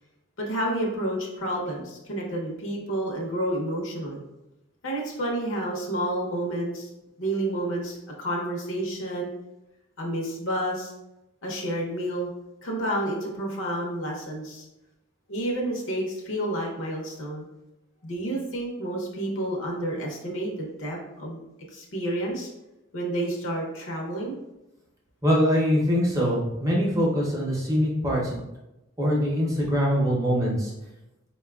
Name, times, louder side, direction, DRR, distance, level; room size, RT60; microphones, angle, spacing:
voice 1, 0.4-4.2 4.8-6.9 7.2-9.3 10.0-10.9 11.4-12.3 12.6-14.7 15.3-17.4 18.0-21.4 21.7-22.5 22.9-24.4, right 1 dB, 70° left, -1 dB, 0.7 m, -30 dB
voice 2, 25.2-28.4 29.0-30.7, equal, 15° right, -4 dB, 0.6 m, -23 dB
4.3 x 2.2 x 2.3 m, 0.95 s
head